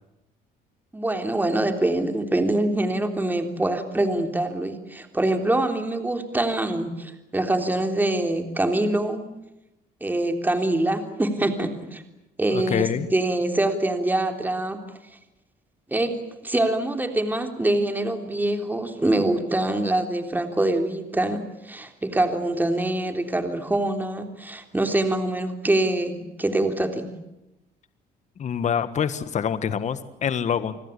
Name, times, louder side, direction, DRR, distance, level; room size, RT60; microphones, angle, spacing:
voice 1, 0.9-9.3 10.0-12.0 12.4-14.8 15.9-27.1, right 1 dB, 10° right, 6 dB, 3.4 m, -24 dB
voice 2, 12.5-13.1 28.4-30.8, left 8 dB, 45° left, 13 dB, 1.6 m, -25 dB
29.5 x 20.5 x 8.4 m, 0.91 s
cardioid pair, 110°, 17 cm